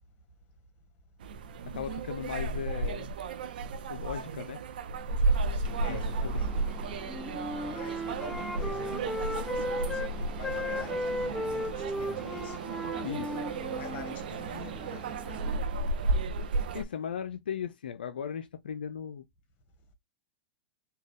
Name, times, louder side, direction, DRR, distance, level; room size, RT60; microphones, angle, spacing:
sound 1, 1.2-16.8, right 3 dB, 75° right, 0.5 m, -33 dB
voice 1, 1.7-3.1 3.9-4.6 5.9-6.0 6.2-6.5 13.0-13.4 16.7-19.3, left 8 dB, 85° left, 0.3 m, -37 dB
voice 2, 5.2-6.5 7.1-7.3 7.6-12.6 13.7-15.4, left 8 dB, 40° left, 1.3 m, -47 dB
sound 2, 5.6-15.6, right 3 dB, 20° right, 0.8 m, -46 dB
Wind instrument woodwind instrument, 7.0-10.1 10.4-14.2, left 1 dB, ahead, 0.5 m, -35 dB
3.9 x 2.2 x 3.3 m
hypercardioid pair, 105°, 5 cm